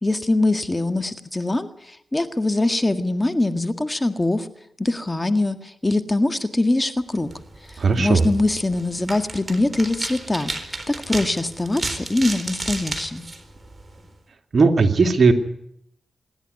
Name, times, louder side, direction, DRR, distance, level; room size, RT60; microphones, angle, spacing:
voice 1, 0.0-4.5 4.8-7.3 8.0-10.5 10.9-13.3, left 2 dB, 20° left, 8 dB, 1.8 m, -23 dB
sound 1, 7.2-14.1, right 2 dB, 30° right, 4.1 m, -33 dB
voice 2, 7.8-8.2 14.5-15.3, right 4 dB, 60° right, 5 dB, 2.4 m, -16 dB
26.0 x 11.0 x 9.5 m, 0.74 s
supercardioid pair, 45°, 0 cm